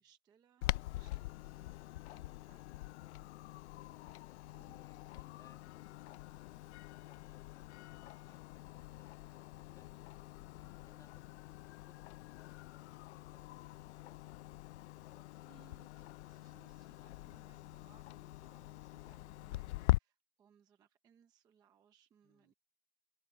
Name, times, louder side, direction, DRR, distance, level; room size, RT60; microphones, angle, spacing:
voice 1, 0.0-3.3 4.5-4.8 15.5-22.5, right 8 dB, 10° right, 0.6 m, -69 dB
Clock, 0.6-20.0, left 17 dB, 55° left, 0.5 m, -43 dB
voice 2, 4.8-9.2 9.5-10.0 10.5-14.3 22.2-22.5, left 5 dB, 10° left, 1.4 m, -70 dB
open air
supercardioid pair, 175°, 41 cm